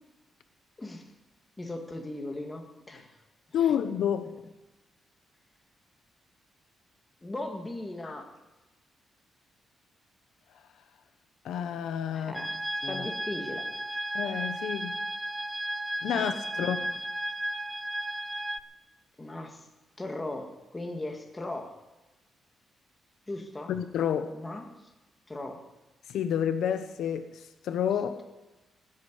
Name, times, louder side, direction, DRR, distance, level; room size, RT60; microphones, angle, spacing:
voice 1, 0.8-1.1 1.6-3.2 7.2-8.3 12.1-12.6 12.9-13.7 16.1-16.8 19.2-19.7 20.0-21.7 23.3-23.7 24.3-24.7 25.3-25.6, left 2 dB, 15° left, 3 dB, 1.8 m, -38 dB
voice 2, 3.5-4.3 8.0-8.2 11.4-12.5 12.8-13.1 14.1-15.0 16.0-16.9 23.7-24.4 26.1-28.2, left 9 dB, 80° left, 10 dB, 0.9 m, -30 dB
sound 1, 12.3-18.6, right 1 dB, 5° right, 0.5 m, -34 dB
16.0 x 8.6 x 9.7 m, 1.1 s
wide cardioid pair, 170°, 0 cm